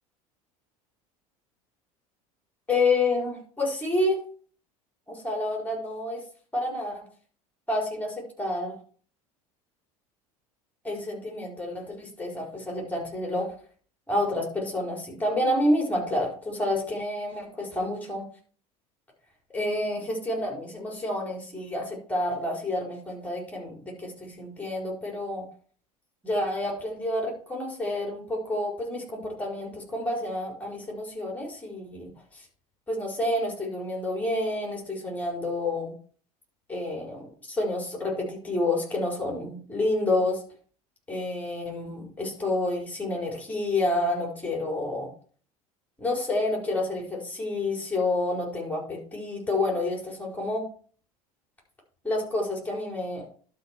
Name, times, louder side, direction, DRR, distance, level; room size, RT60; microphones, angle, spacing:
voice 1, 2.7-4.2 5.1-6.2 6.5-7.0 7.7-8.8 10.8-13.5 14.1-18.2 19.5-25.4 26.2-32.4 32.9-35.9 36.7-40.4 41.1-45.1 46.0-50.6 52.0-53.3, left 2 dB, 10° left, -1 dB, 4.9 m, -29 dB
12.0 x 5.0 x 4.6 m, 0.44 s
figure-of-eight pair, 70°, 19 cm